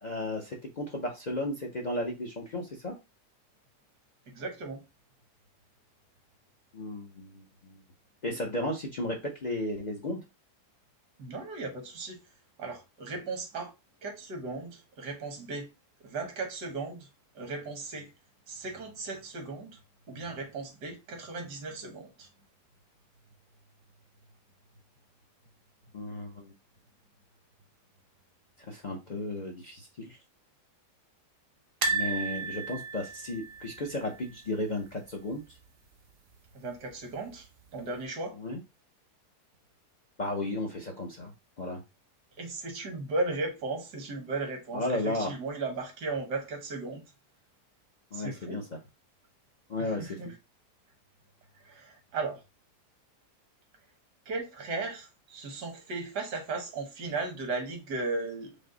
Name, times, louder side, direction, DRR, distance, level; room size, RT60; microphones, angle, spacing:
voice 1, 0.0-3.0 6.7-7.8 8.2-10.2 25.9-26.5 28.6-30.2 31.9-35.4 38.4-38.6 40.2-41.3 41.6-41.8 44.7-45.3 48.1-48.6 49.7-50.3, left 1 dB, 50° left, 0.5 m, -34 dB
voice 2, 4.4-4.8 11.2-12.2 12.6-13.7 14.0-15.7 16.0-17.1 17.4-18.1 18.5-19.8 20.1-22.3 36.6-37.5 37.7-38.4 42.4-47.0 48.1-48.6 49.8-50.3 51.6-52.4 54.3-58.5, right 3 dB, 80° right, 1.6 m, -36 dB
sound 1, 31.8-34.9 35.1-35.3 35.6-35.7 36.9-37.5 38.0-38.1, right 4 dB, 60° right, 0.6 m, -34 dB
5.1 x 2.0 x 3.7 m
omnidirectional pair, 1.7 m